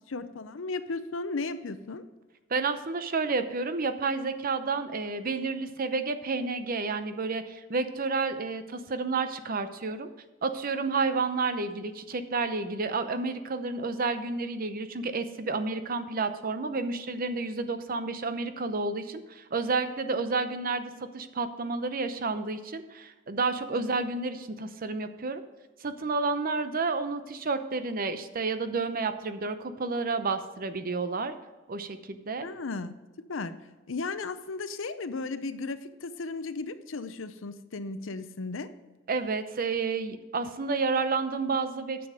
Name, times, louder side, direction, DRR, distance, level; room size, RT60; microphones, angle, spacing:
voice 1, 0.1-2.1 23.7-24.0 32.4-33.5 33.9-38.7, left 3 dB, 80° left, 12 dB, 0.7 m, -35 dB
voice 2, 2.5-10.1 10.4-25.4 25.8-31.3 31.7-32.5 39.1-42.1, right 4 dB, 50° right, 10 dB, 0.7 m, -30 dB
9.7 x 7.1 x 5.0 m, 1.2 s
head